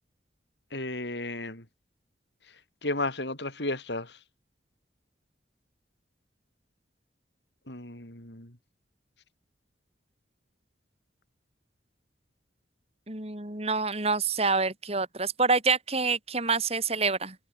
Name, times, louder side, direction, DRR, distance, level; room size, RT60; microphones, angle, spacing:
voice 1, 0.7-1.6 2.8-4.1 7.7-8.5, left 2 dB, 70° left, 6.8 m, -33 dB
voice 2, 13.1-17.4, right 4 dB, 35° right, 4.5 m, -27 dB
head